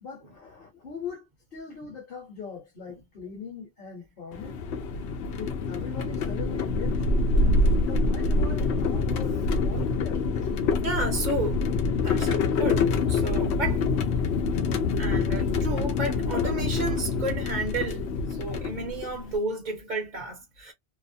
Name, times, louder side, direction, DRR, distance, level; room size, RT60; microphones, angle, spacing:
voice 1, 0.0-1.2 1.5-4.6 5.4-7.0 7.4-9.4 9.6-10.3 14.7-14.8 15.3-15.4 16.8-17.0, left 6 dB, 60° left, 1.1 m, -40 dB
sound 1, 4.3-19.3, left 3 dB, 85° left, 0.9 m, -26 dB
voice 2, 10.8-11.6 12.0-13.8 15.0-18.0 18.3-20.7, right 2 dB, 50° right, 0.8 m, -32 dB
2.7 x 2.0 x 2.5 m
omnidirectional pair, 1.1 m